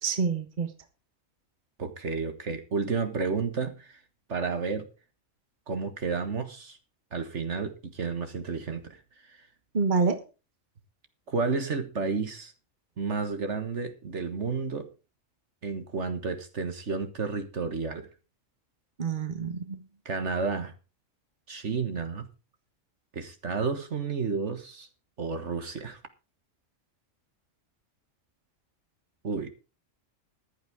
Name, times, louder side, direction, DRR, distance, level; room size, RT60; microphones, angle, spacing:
voice 1, 0.0-0.7 9.7-10.2 19.0-19.8, right 5 dB, 35° right, 8 dB, 1.6 m, -27 dB
voice 2, 1.8-4.0 4.3-4.9 5.7-6.8 7.1-9.5 11.3-12.5 13.0-14.9 15.6-18.1 20.1-20.7 21.5-22.3 23.1-24.9 25.2-26.0 29.2-29.5, right 4 dB, 60° right, 8 dB, 1.8 m, -31 dB
14.5 x 11.5 x 3.6 m, 0.32 s
omnidirectional pair, 1.4 m